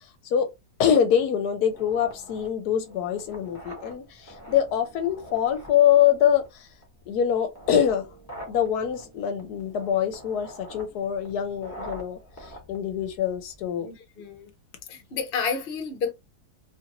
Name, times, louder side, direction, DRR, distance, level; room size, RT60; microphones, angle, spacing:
voice 1, 0.8-6.7 7.1-8.1 8.5-13.9, left 9 dB, 75° left, 1.1 m, -24 dB
sound 1, 1.7-13.7, right 1 dB, 15° left, 0.8 m, -45 dB
voice 2, 13.8-14.5 14.9-16.1, left 5 dB, 50° left, 0.7 m, -30 dB
3.0 x 2.5 x 2.9 m
omnidirectional pair, 1.8 m